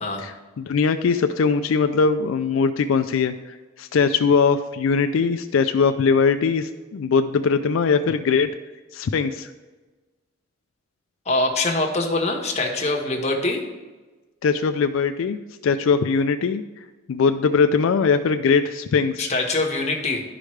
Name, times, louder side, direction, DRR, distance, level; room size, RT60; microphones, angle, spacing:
voice 1, 0.2-8.5 8.9-9.5 14.4-16.6 17.1-19.3, left 5 dB, 90° left, 9 dB, 0.4 m, -21 dB
voice 2, 11.3-13.6 19.2-20.2, left 2 dB, 35° left, 1 dB, 1.2 m, -23 dB
11.5 x 5.0 x 3.2 m, 1.2 s
head